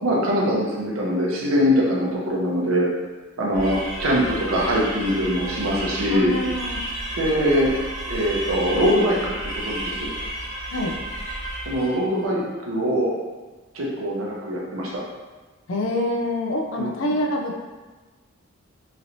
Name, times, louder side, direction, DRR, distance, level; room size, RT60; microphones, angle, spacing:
voice 1, 0.0-2.9 3.4-6.3 7.1-7.7 8.1-10.1 11.7-13.1 13.7-15.0 16.8-17.1, equal, 90° right, -3 dB, 0.7 m, -23 dB
sound 1, 3.5-12.1, right 1 dB, 45° right, 1.0 m, -32 dB
voice 2, 6.1-6.8 10.7-10.9 15.7-17.6, left 1 dB, 70° left, 1 dB, 0.5 m, -26 dB
3.1 x 2.8 x 2.7 m, 1.3 s
head